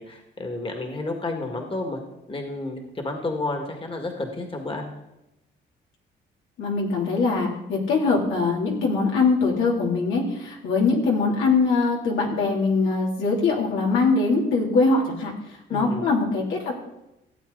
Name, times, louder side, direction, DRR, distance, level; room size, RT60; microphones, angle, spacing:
voice 1, 0.0-2.0 2.3-4.9 15.7-16.1, left 2 dB, 25° left, 3 dB, 1.9 m, -31 dB
voice 2, 6.6-15.3 15.7-16.7, left 4 dB, 80° left, -2 dB, 3.0 m, -22 dB
16.0 x 8.3 x 3.9 m, 0.91 s
cardioid pair, 90°, 20 cm